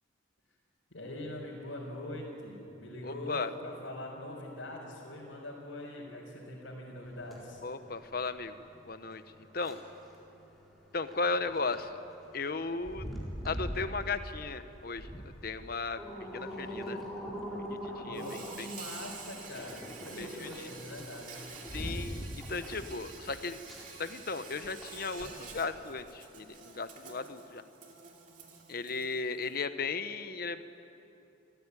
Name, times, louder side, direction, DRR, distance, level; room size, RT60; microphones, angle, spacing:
voice 1, 0.9-7.6 18.0-21.4 21.8-22.4, left 1 dB, 80° left, -6 dB, 4.4 m, -43 dB
voice 2, 3.0-3.5 7.6-9.2 9.5-9.8 10.9-12.0 12.3-13.1 13.4-16.0 16.3-17.0 17.8-18.2 18.6-18.7 20.2-20.5 21.7-23.6 24.0-27.6 28.7-30.6, left 4 dB, 50° left, 11 dB, 0.9 m, -36 dB
sound 1, 7.0-25.9, equal, ahead, 4.2 m, -43 dB
Insect, 18.1-29.6, right 5 dB, 40° right, 2.7 m, -49 dB
27.0 x 14.5 x 9.7 m, 2.9 s
head